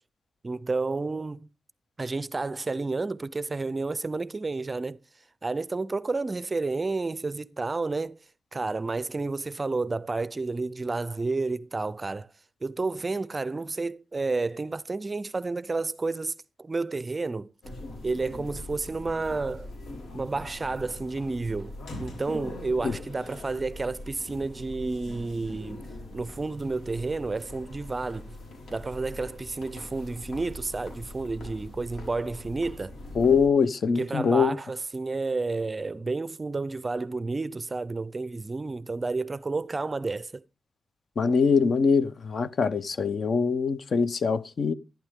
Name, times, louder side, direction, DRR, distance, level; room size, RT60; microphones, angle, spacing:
voice 1, 0.4-1.5 2.0-5.0 5.4-8.2 8.5-12.3 12.6-17.5 18.0-19.7 20.1-21.7 22.0-25.9 26.1-28.3 28.7-33.0 34.0-40.4, right 3 dB, 25° right, 0.5 m, -31 dB
sound 1, 17.6-33.5, left 1 dB, 90° left, 5.0 m, -42 dB
voice 2, 33.2-34.5 41.2-44.7, left 5 dB, 50° left, 0.8 m, -23 dB
12.0 x 11.5 x 3.6 m
wide cardioid pair, 125°, 0 cm